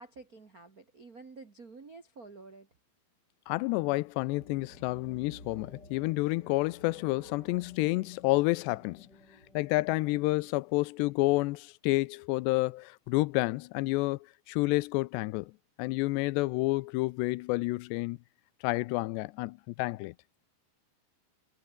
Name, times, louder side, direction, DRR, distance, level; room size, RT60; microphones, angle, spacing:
voice 1, 0.0-2.7, right 3 dB, 55° right, 1.0 m, -50 dB
voice 2, 3.5-9.1 9.5-15.5 15.8-18.2 18.6-20.1, left 22 dB, 85° left, 2.8 m, -29 dB
sound 1, 4.4-10.6, left 2 dB, 25° left, 8.7 m, -54 dB
omnidirectional pair, 4.9 m